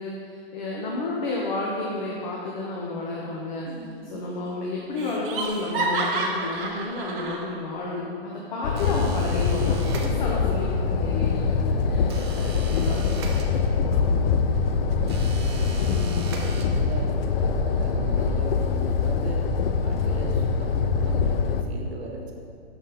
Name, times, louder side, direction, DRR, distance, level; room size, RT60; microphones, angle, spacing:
voice 1, 0.0-3.7 4.1-11.4 11.8-12.1 12.4-13.1 13.9-14.3 14.8-15.0 15.9-16.3, left 2 dB, 50° left, -3 dB, 0.8 m, -31 dB
Laughter, 3.7-4.2 4.5-4.6 5.0-7.4, right 3 dB, 60° right, 1.0 m, -29 dB
sound 1, 8.6-21.6, left 5 dB, 70° left, 0.4 m, -24 dB
sound 2, 8.8-10.6 12.1-14.0 15.1-17.1, right 4 dB, 30° right, 0.3 m, -41 dB
voice 2, 11.8-22.3, right 2 dB, 80° right, 0 dB, 1.1 m, -39 dB
5.9 x 3.9 x 4.0 m, 2.5 s
hypercardioid pair, 155°, 31 cm